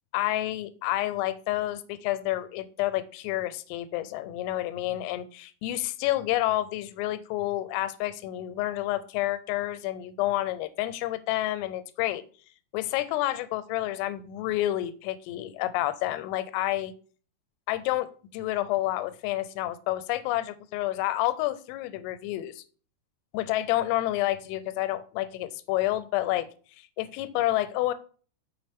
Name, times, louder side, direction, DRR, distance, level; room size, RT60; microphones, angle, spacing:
voice 1, 0.1-12.2 12.7-16.9 17.7-18.1 18.3-22.6 23.3-26.5 27.0-27.9, left 15 dB, 90° left, 13 dB, 3.2 m, -29 dB
6.3 x 6.1 x 3.5 m, 0.42 s
omnidirectional pair, 5.8 m